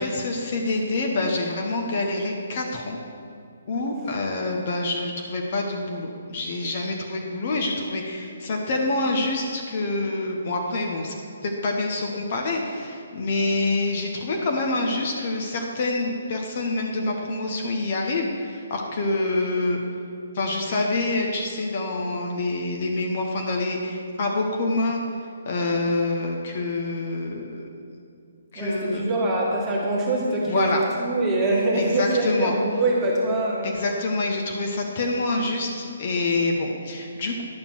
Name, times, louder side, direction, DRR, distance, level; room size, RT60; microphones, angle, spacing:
voice 1, 0.0-3.0 3.7-11.1 11.4-19.8 20.3-25.0 25.4-27.7 28.5-29.0 30.5-30.8 31.8-32.5 33.6-37.4, left 2 dB, 40° left, 1 dB, 1.1 m, -26 dB
voice 2, 28.6-33.8, right 2 dB, 15° right, -5 dB, 1.9 m, -24 dB
10.5 x 7.0 x 4.5 m, 2.5 s
figure-of-eight pair, 135°, 0 cm